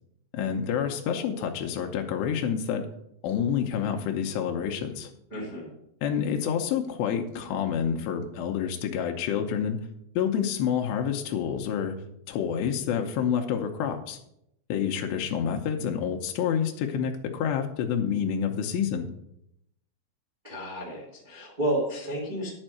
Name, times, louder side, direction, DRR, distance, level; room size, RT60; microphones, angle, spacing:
voice 1, 0.3-2.8 3.2-5.1 6.0-9.8 10.2-11.9 12.3-14.2 14.7-19.1, left 8 dB, 85° left, 3 dB, 2.4 m, -28 dB
voice 2, 5.3-5.7 20.4-22.5, right 1 dB, 55° right, -3 dB, 0.5 m, -31 dB
11.0 x 4.4 x 7.7 m, 0.77 s
omnidirectional pair, 6.0 m